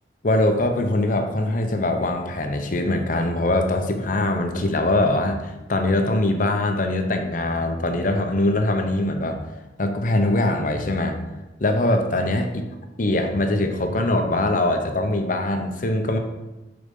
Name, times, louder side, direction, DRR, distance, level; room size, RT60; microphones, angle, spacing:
voice 1, 0.2-9.4 9.8-11.2 11.6-12.5 13.0-16.2, left 1 dB, 45° left, 5 dB, 0.7 m, -22 dB
6.8 x 3.9 x 5.4 m, 1.1 s
head